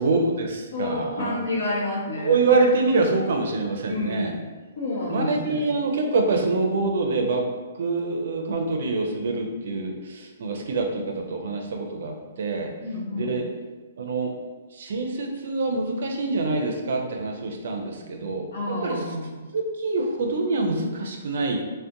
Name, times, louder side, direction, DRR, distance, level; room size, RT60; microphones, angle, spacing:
voice 1, 0.0-1.4 2.2-4.3 5.1-7.5 7.8-12.7 13.1-13.5 14.0-14.3 14.7-19.0 19.5-21.6, right 3 dB, 65° right, 2 dB, 0.4 m, -25 dB
voice 2, 0.7-2.6 2.9-3.0 3.9-4.4 4.8-5.6 12.8-13.4 18.5-19.3, left 2 dB, 65° left, -4 dB, 0.8 m, -29 dB
2.4 x 2.1 x 2.7 m, 1.3 s
hypercardioid pair, 125°, 0 cm